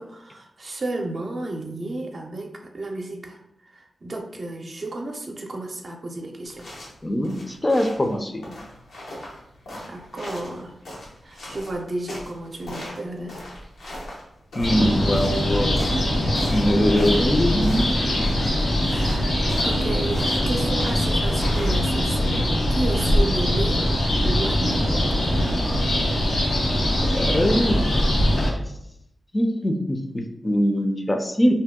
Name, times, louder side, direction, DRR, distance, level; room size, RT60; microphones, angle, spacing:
voice 1, 0.0-3.4 3.7-6.7 9.9-10.8 11.2-13.4 18.9-23.9 24.2-25.0, right 2 dB, 55° right, 2 dB, 0.5 m, -32 dB
sound 1, 6.4-22.2, left 1 dB, 85° left, 0.9 m, -39 dB
voice 2, 7.0-8.4 14.5-16.1 16.5-18.0 18.4-18.5 27.1-28.0 29.3-31.5, equal, 25° left, 5 dB, 0.5 m, -22 dB
sound 2, 14.6-28.5, left 1 dB, 70° left, 1.3 m, -22 dB
2.7 x 2.2 x 3.6 m, 0.78 s
cardioid pair, 45°, 0 cm